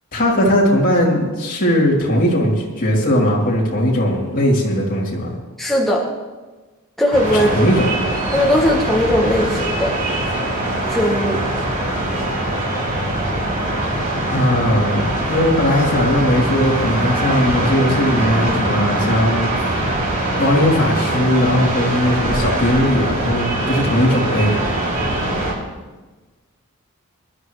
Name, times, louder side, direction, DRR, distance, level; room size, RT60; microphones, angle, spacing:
voice 1, 0.1-5.3 7.3-7.9 14.3-19.5 20.4-24.6, equal, 40° left, -5 dB, 3.2 m, -18 dB
voice 2, 5.6-6.1 7.0-7.5 8.3-10.0 10.9-11.4, equal, ahead, -3 dB, 1.3 m, -18 dB
sound 1, 7.1-25.5, right 1 dB, 35° right, 5.6 m, -22 dB
24.5 x 11.0 x 3.2 m, 1.2 s
head